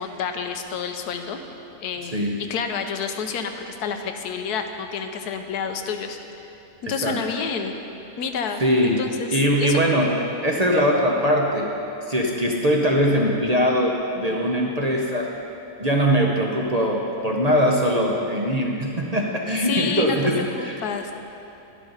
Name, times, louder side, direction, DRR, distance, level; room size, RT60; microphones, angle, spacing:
voice 1, 0.0-1.4 1.8-2.2 2.5-6.2 6.8-7.7 8.2-9.8 19.7-20.3 20.6-21.1, left 6 dB, 80° left, 6 dB, 1.3 m, -29 dB
voice 2, 6.9-7.2 8.6-9.0 9.3-11.7 12.1-15.3 15.8-20.8, equal, 35° right, -1 dB, 0.7 m, -21 dB
11.5 x 11.0 x 3.9 m, 2.9 s
omnidirectional pair, 1.7 m